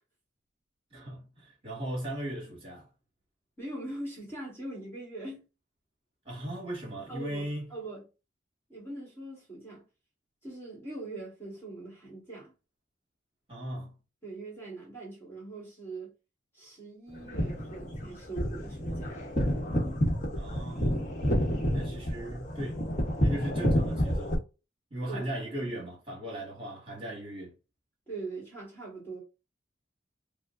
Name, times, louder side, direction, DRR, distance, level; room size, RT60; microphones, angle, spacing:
voice 1, 0.9-2.9 6.3-7.7 13.5-13.9 20.3-21.0 21.7-22.8 23.2-24.4 24.9-27.5, right 1 dB, 30° right, 1.8 m, -38 dB
voice 2, 3.6-5.4 7.1-8.0 8.7-9.8 10.4-12.5 14.2-16.1 16.5-19.2 21.3-21.5 25.0-25.3 28.1-29.2, right 2 dB, 10° left, 1.4 m, -42 dB
sound 1, 17.1-24.3, equal, 40° left, 1.0 m, -29 dB
4.8 x 2.1 x 2.5 m
head